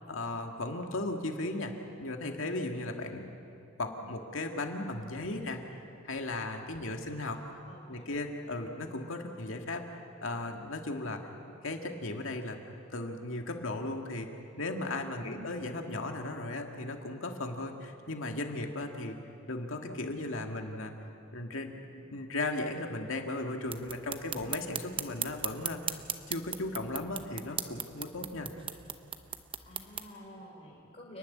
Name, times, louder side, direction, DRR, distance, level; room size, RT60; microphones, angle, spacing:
voice 1, 0.1-1.7 2.0-3.3 3.8-7.6 7.9-11.2 11.6-12.6 12.9-19.2 19.5-20.9 21.3-26.0 26.3-28.5, left 2 dB, 85° left, 3 dB, 2.0 m, -36 dB
voice 2, 3.8-4.2 7.6-8.1 15.2-15.5 29.6-31.2, equal, 35° left, -6 dB, 4.8 m, -49 dB
sound 1, 23.7-30.1, right 8 dB, 25° right, 0.8 m, -39 dB
29.5 x 11.5 x 9.7 m, 2.7 s
head